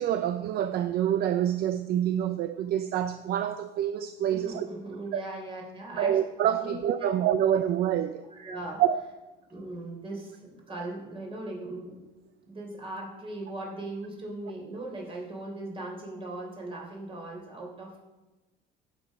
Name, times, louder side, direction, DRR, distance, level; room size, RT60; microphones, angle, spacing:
voice 1, 0.0-4.7 5.1-5.2 5.9-8.2 8.8-9.0, right 10 dB, 55° right, 0.5 m, -27 dB
voice 2, 4.3-6.1 6.6-6.7 7.0-7.1 8.3-8.8 9.5-12.0 12.4-18.0, right 2 dB, 30° right, 3.5 m, -39 dB
8.5 x 7.6 x 5.2 m
cardioid pair, 120°, 19 cm